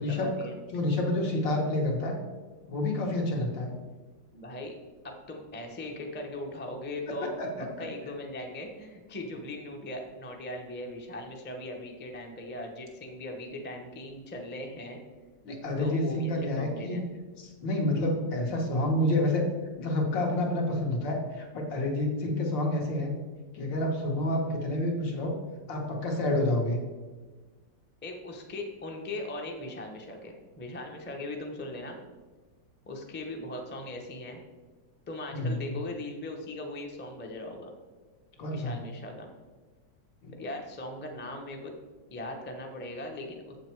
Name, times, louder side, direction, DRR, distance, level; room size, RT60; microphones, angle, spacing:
voice 1, 0.0-0.5 4.3-4.7 5.0-7.3 7.8-15.0 15.8-17.0 28.0-32.0 32.9-34.4 35.1-37.7 38.5-39.3 40.4-41.8 42.1-43.6, left 1 dB, 15° left, 2 dB, 0.4 m, -39 dB
voice 2, 0.7-2.2 2.7-3.7 7.4-7.7 15.4-17.0 17.4-19.4 19.8-23.1 23.5-25.3 25.7-26.8 35.3-35.7 38.4-38.7 40.2-40.3, left 1 dB, 80° left, 0 dB, 2.1 m, -28 dB
7.4 x 6.5 x 4.6 m, 1.3 s
omnidirectional pair, 2.0 m